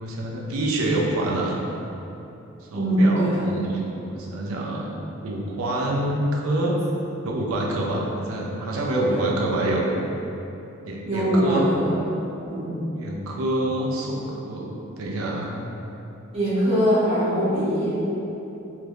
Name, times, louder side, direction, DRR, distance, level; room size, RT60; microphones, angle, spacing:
voice 1, 0.0-1.6 2.6-5.0 5.2-6.8 7.2-9.9 10.8-11.6 12.9-15.5, right 1 dB, 85° right, -2 dB, 0.5 m, -26 dB
voice 2, 2.7-3.5 9.1-9.2 11.1-12.0 12.4-12.7 16.3-18.0, equal, 30° right, -12 dB, 1.0 m, -22 dB
3.3 x 2.7 x 2.4 m, 3.0 s
head